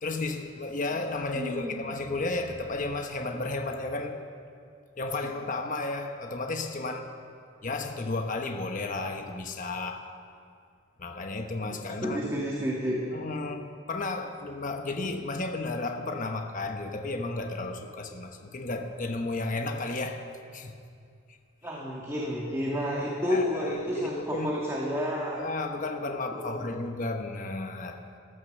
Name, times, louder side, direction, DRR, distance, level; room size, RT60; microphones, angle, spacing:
voice 1, 0.0-4.2 5.0-7.2 7.6-10.0 11.0-12.3 13.1-20.8 23.1-24.5 25.3-28.0, left 2 dB, 40° left, 5 dB, 1.0 m, -33 dB
voice 2, 1.3-1.8 11.6-13.0 21.6-25.4 26.3-26.7, equal, 15° right, -4 dB, 1.8 m, -31 dB
14.5 x 13.0 x 6.6 m, 2.3 s
head